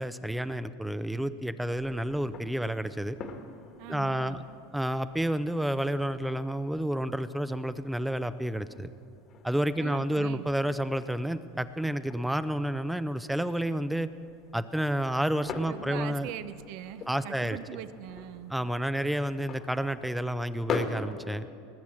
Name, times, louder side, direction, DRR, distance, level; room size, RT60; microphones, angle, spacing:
voice 1, 0.0-3.2 3.9-4.4 4.7-8.9 9.4-14.1 14.5-16.3 17.1-17.6 18.5-21.5, right 1 dB, 5° right, 12 dB, 0.5 m, -30 dB
sound 1, 1.6-20.9, left 6 dB, 45° left, 1.5 m, -44 dB
voice 2, 3.8-4.4 9.8-10.5 15.7-18.5, right 12 dB, 65° right, 13 dB, 0.6 m, -41 dB
19.5 x 7.0 x 7.5 m, 2.5 s
hypercardioid pair, 95°, 0 cm